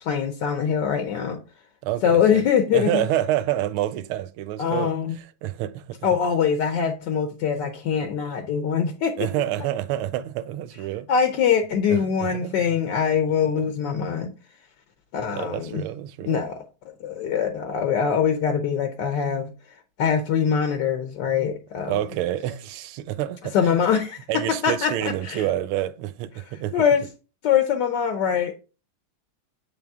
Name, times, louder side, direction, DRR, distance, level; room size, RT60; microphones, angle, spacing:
voice 1, 0.0-1.4 2.0-3.0 4.6-5.2 6.0-9.3 11.1-14.3 15.1-15.9 16.2-16.6 17.0-22.0 23.5-24.2 24.6-25.4 26.3-27.0 27.4-28.5, left 7 dB, 65° left, 1.2 m, -23 dB
voice 2, 1.8-2.4 2.7-4.9 5.4-6.0 9.2-11.1 11.9-12.6 13.5-14.0 15.3-16.4 21.9-23.5 24.3-26.7, right 13 dB, 80° right, 1.4 m, -28 dB
9.1 x 3.5 x 3.5 m
omnidirectional pair, 2.4 m